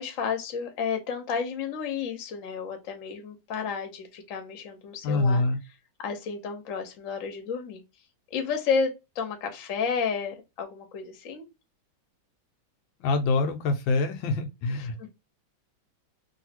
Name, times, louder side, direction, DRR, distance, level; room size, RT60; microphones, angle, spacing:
voice 1, 0.0-5.4 6.0-7.8 8.3-11.5 15.0-15.1, left 6 dB, 55° left, 1.0 m, -31 dB
voice 2, 5.0-5.6 13.0-15.1, left 3 dB, 80° left, 1.3 m, -25 dB
3.1 x 2.7 x 2.8 m
omnidirectional pair, 2.1 m